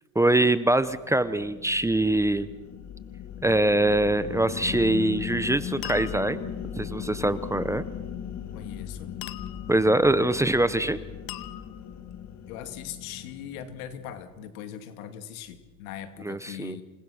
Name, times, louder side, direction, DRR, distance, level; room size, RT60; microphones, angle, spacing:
voice 1, 0.2-2.5 3.4-6.4 6.8-7.8 9.7-11.0 16.2-16.7, right 1 dB, 5° right, 14 dB, 0.6 m, -23 dB
sound 1, 0.8-14.3, left 9 dB, 40° left, 2.0 m, -38 dB
sound 2, 4.8-5.2 5.8-6.5 9.2-9.9 11.3-12.1, left 15 dB, 60° left, 1.2 m, -42 dB
voice 2, 8.5-9.2 12.5-16.8, left 10 dB, 85° left, 9 dB, 2.3 m, -40 dB
28.5 x 18.5 x 6.3 m, 1.2 s
supercardioid pair, 125°, 41 cm